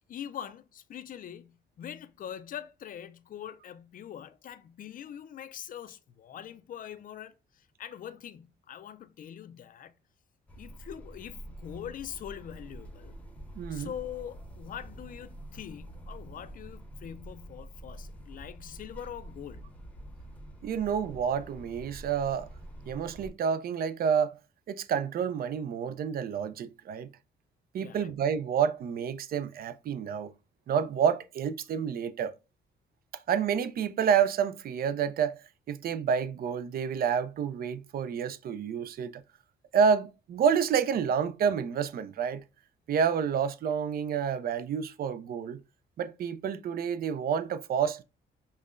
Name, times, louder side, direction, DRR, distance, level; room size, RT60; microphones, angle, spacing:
voice 1, 0.1-10.0 10.6-13.1 13.7-19.6 27.8-28.1, left 10 dB, 45° left, 0.4 m, -43 dB
sound 1, 10.5-23.3, right 1 dB, 5° left, 0.8 m, -46 dB
voice 2, 13.6-13.9 20.6-22.5 22.9-24.3 24.7-27.1 27.7-30.3 30.7-32.3 33.3-35.4 35.7-39.2 39.7-42.4 42.9-45.6 46.0-48.0, right 7 dB, 50° right, 0.4 m, -29 dB
5.3 x 2.1 x 2.4 m
cardioid pair, 90°, 20 cm